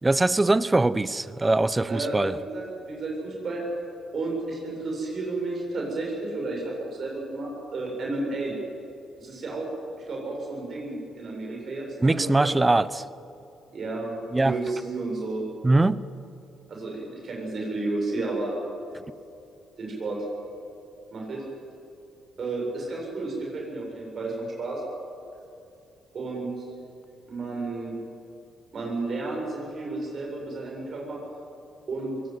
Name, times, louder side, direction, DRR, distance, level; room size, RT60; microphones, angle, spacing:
voice 1, 0.0-2.4 12.0-13.0 14.3-14.5 15.6-16.0 18.9-19.0, right 2 dB, 20° right, 17 dB, 0.8 m, -22 dB
voice 2, 1.9-3.7 4.1-8.5 9.2-9.7 10.1-12.6 13.7-15.4 16.7-18.6 19.8-20.2 21.1-21.4 22.4-24.8 26.1-26.7 27.3-28.0 28.7-31.2 31.9-32.2, right 2 dB, 50° right, -1 dB, 7.7 m, -32 dB
23.0 x 17.0 x 9.6 m, 2.6 s
cardioid pair, 90°, 0 cm